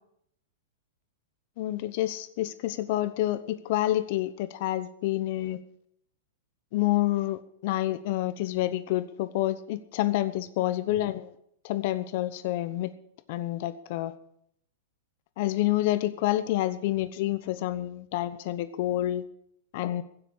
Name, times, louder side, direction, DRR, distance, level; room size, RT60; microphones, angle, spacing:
voice 1, 1.6-5.6 6.7-11.3 11.6-12.9 13.3-14.1 15.4-19.2 19.7-20.0, left 15 dB, 50° left, 13 dB, 0.9 m, -28 dB
16.0 x 8.2 x 8.7 m, 0.70 s
supercardioid pair, 150°, 0 cm